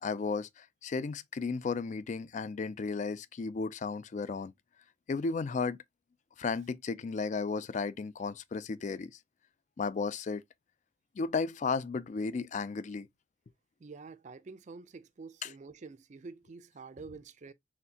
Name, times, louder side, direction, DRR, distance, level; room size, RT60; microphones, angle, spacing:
voice 1, 0.0-4.5 5.1-5.8 6.4-9.1 9.8-10.4 11.2-13.1 15.4-15.5, left 4 dB, 40° left, 0.3 m, -34 dB
voice 2, 13.8-17.5, right 4 dB, 40° right, 0.4 m, -48 dB
4.3 x 3.4 x 2.7 m
head